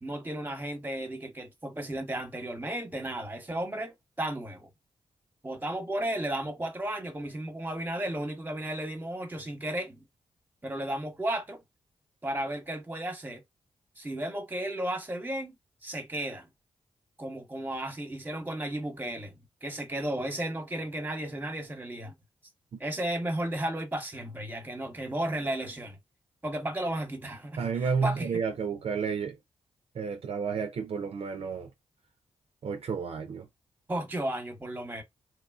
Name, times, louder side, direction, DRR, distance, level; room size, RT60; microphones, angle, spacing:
voice 1, 0.0-4.7 5.4-10.0 10.6-11.6 12.2-13.4 14.0-15.6 15.8-16.5 17.2-19.3 19.6-22.1 22.8-26.0 26.4-28.3 33.9-35.0, right 1 dB, 15° right, 0.9 m, -34 dB
voice 2, 27.6-29.4 29.9-31.7 32.6-33.5, right 5 dB, 60° right, 0.4 m, -31 dB
3.0 x 2.3 x 2.3 m
supercardioid pair, 45°, 11 cm